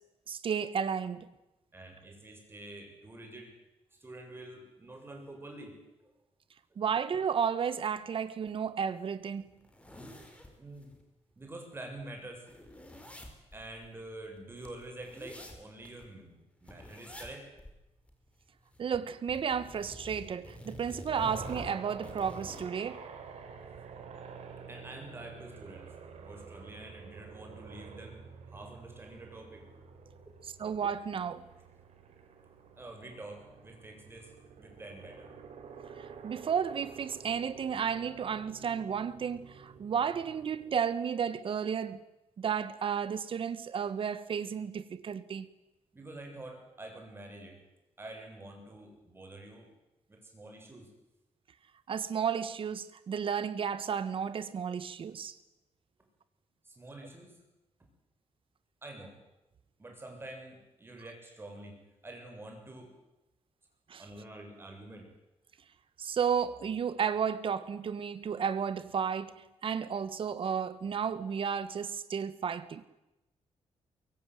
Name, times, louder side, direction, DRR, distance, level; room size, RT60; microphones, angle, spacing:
voice 1, 0.3-1.3 6.8-9.4 18.8-23.0 30.6-31.5 36.0-42.0 42.4-45.5 51.9-55.3 63.9-64.0 66.0-69.3 69.6-72.8, right 7 dB, 50° right, 1.6 m, -33 dB
voice 2, 1.7-3.6 3.9-5.8 10.6-10.9 11.4-12.5 13.5-17.5 24.7-25.9 26.2-29.7 30.2-30.3 32.8-34.3 34.6-35.3 45.9-47.6 48.0-49.7 50.1-50.9 56.6-57.4 58.8-59.2 59.8-61.8 62.0-63.0 64.0-65.1, right 2 dB, 20° right, 7.4 m, -47 dB
sound 1, 8.5-8.6 9.0-9.1 9.4-11.0 11.4-11.5 11.7-16.1 16.6-17.3 17.6-17.8 18.1-19.0 19.3-22.7, equal, 10° left, 4.8 m, -48 dB
sound 2, 21.1-40.8, right 6 dB, 70° right, 4.6 m, -49 dB
23.5 x 23.0 x 9.5 m
wide cardioid pair, 140°, 11 cm